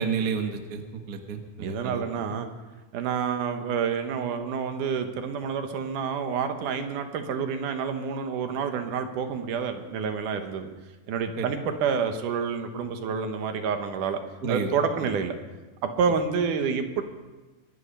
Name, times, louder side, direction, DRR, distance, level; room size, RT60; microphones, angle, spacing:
voice 1, 0.0-2.0 11.4-11.5 14.4-14.7 15.0-15.1, right 5 dB, 50° right, 5 dB, 1.2 m, -30 dB
voice 2, 1.6-2.5 2.9-10.7 11.1-14.2 14.5-15.4 16.0-17.0, right 6 dB, 90° right, 7 dB, 2.7 m, -28 dB
23.5 x 10.0 x 5.5 m, 1.2 s
omnidirectional pair, 3.6 m